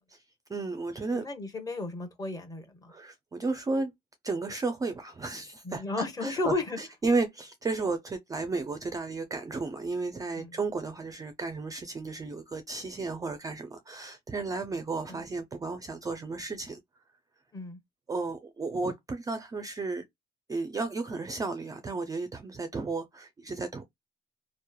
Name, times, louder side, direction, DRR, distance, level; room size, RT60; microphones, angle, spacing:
voice 1, 0.5-1.2 2.9-3.9 4.2-5.8 6.2-16.8 18.1-20.0 20.5-23.8, right 3 dB, 20° right, 0.4 m, -33 dB
voice 2, 1.1-2.9 5.6-6.8 10.4-10.6 15.1-15.2 17.5-17.8, left 3 dB, 20° left, 0.8 m, -34 dB
3.0 x 2.0 x 2.2 m
cardioid pair, 110°, 17 cm